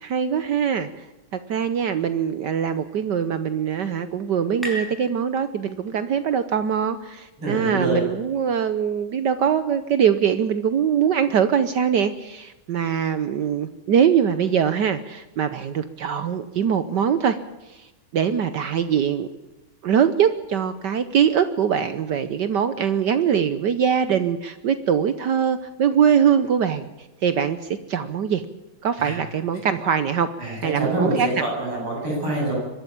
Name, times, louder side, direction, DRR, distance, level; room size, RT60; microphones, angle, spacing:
voice 1, 0.0-0.9 1.3-17.4 17.7-17.8 18.1-19.3 19.8-26.9 27.2-27.6 27.9-28.4 28.8-30.3 30.6-31.4, right 8 dB, 65° right, 11 dB, 1.3 m, -22 dB
sound 1, 3.2-6.5, right 1 dB, ahead, 5.1 m, -39 dB
voice 2, 7.4-8.0 29.0-29.2 30.4-32.5, right 2 dB, 80° right, -2 dB, 8.9 m, -25 dB
23.5 x 13.0 x 8.7 m, 1.0 s
omnidirectional pair, 2.3 m